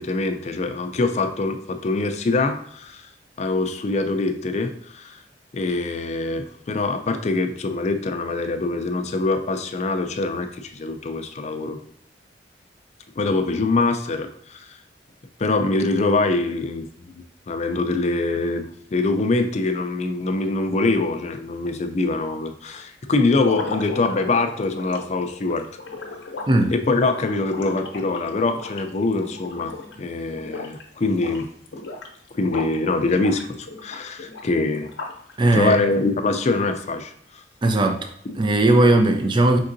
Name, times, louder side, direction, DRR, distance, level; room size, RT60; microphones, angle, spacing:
voice 1, 0.0-3.1 3.4-5.2 5.5-11.8 13.2-14.8 15.4-16.9 17.2-25.7 26.7-31.5 32.3-34.9 35.5-37.4 38.3-38.4, left 3 dB, 40° left, 7 dB, 0.4 m, -24 dB
sound 1, 23.4-30.0 30.3-30.8 31.1-32.8 33.1-35.3, left 3 dB, 75° left, 0.8 m, -35 dB
voice 2, 35.4-35.8 37.6-38.0 38.4-39.6, right 2 dB, 25° right, 5 dB, 0.4 m, -17 dB
5.2 x 3.7 x 2.6 m, 0.66 s
head